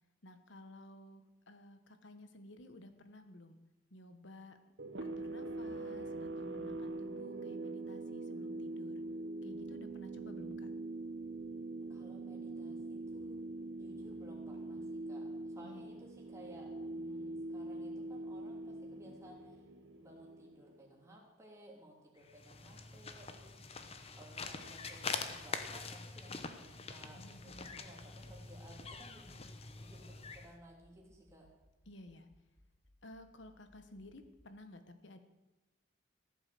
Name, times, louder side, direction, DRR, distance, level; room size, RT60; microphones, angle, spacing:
voice 1, 0.2-3.6 3.9-4.6 5.0-9.0 9.4-10.7 15.3-15.9 27.1-28.1 31.9-32.3 33.0-35.2, left 1 dB, 65° left, 9 dB, 1.3 m, -54 dB
sound 1, 4.8-21.1, right 2 dB, 65° right, 1.1 m, -43 dB
voice 2, 11.8-13.4 13.8-19.6 20.0-23.7 24.1-29.5 29.8-31.5, right 1 dB, 15° right, -2 dB, 3.0 m, -58 dB
sound 2, 22.2-30.5, left 4 dB, 30° left, 0.9 m, -45 dB
Accelerating revving vroom, 27.2-34.5, left 1 dB, 5° left, 2.8 m, -65 dB
15.0 x 8.9 x 7.7 m, 1.1 s
head